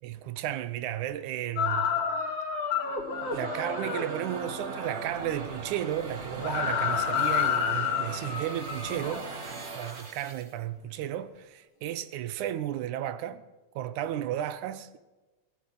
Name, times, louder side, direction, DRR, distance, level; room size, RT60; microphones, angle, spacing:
voice 1, 0.0-2.0 3.3-9.3 9.7-13.4 13.8-15.0, right 11 dB, 85° right, 2.2 m, -33 dB
sound 1, 1.6-4.1 6.4-9.3, left 7 dB, 80° left, 4.1 m, -29 dB
sound 2, 2.8-10.5, right 3 dB, 65° right, 0.6 m, -39 dB
18.5 x 10.5 x 6.0 m
omnidirectional pair, 3.4 m